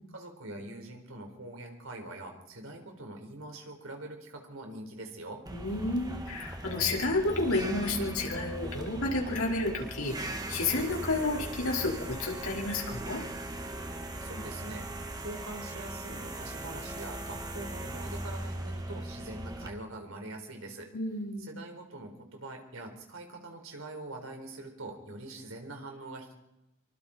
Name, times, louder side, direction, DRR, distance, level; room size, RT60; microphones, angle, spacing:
voice 1, 0.1-5.4 14.2-20.9 21.4-26.3, right 2 dB, 75° right, 3 dB, 4.5 m, -43 dB
voice 2, 5.5-13.2 20.9-21.5, left 2 dB, 85° left, -1 dB, 4.7 m, -31 dB
sound 1, 5.5-19.7, right 1 dB, 20° right, 1.7 m, -39 dB
25.5 x 23.5 x 4.4 m, 0.92 s
head